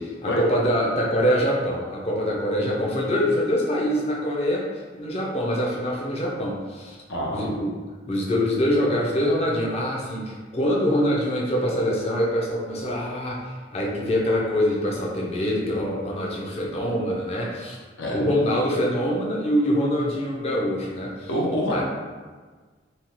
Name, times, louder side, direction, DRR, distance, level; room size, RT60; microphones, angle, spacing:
voice 1, 0.0-7.0 7.3-7.8 8.1-17.8 18.1-21.3 21.7-21.8, equal, 35° left, -2 dB, 0.4 m, -24 dB
voice 2, 7.1-7.5 18.0-18.2 21.3-21.8, equal, 80° left, -3 dB, 0.7 m, -26 dB
2.7 x 2.2 x 3.0 m, 1.4 s
head